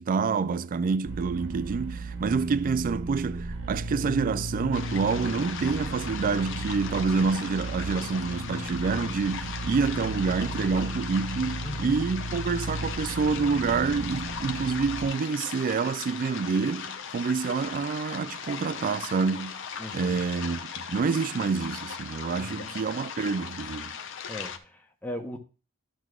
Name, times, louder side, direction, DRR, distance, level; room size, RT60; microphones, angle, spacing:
voice 1, 0.0-19.6 19.9-23.9, right 5 dB, 40° right, 0.3 m, -27 dB
sound 1, 1.1-15.1, right 2 dB, 80° right, 1.0 m, -35 dB
sound 2, 4.7-24.6, left 7 dB, 65° left, 0.7 m, -38 dB
voice 2, 11.6-12.0 19.8-20.2 22.3-22.7 24.3-25.4, left 1 dB, 10° left, 0.7 m, -38 dB
12.0 x 6.1 x 2.3 m
head